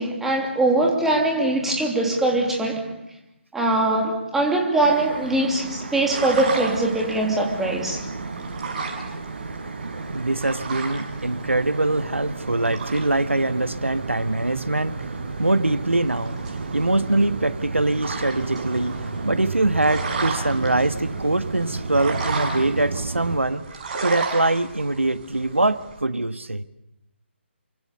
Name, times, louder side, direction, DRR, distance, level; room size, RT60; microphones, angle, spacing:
voice 1, 0.0-2.9 3.5-8.0, right 2 dB, 5° right, 3.1 m, -22 dB
sound 1, 4.8-23.4, right 3 dB, 50° right, 5.1 m, -32 dB
sound 2, 6.1-26.0, right 4 dB, 35° right, 7.1 m, -35 dB
voice 2, 10.1-15.0 15.4-16.4 16.7-18.9 19.2-23.7 24.0-26.6, right 2 dB, 80° right, 1.5 m, -23 dB
28.0 x 25.0 x 7.0 m
figure-of-eight pair, 145°, 7 cm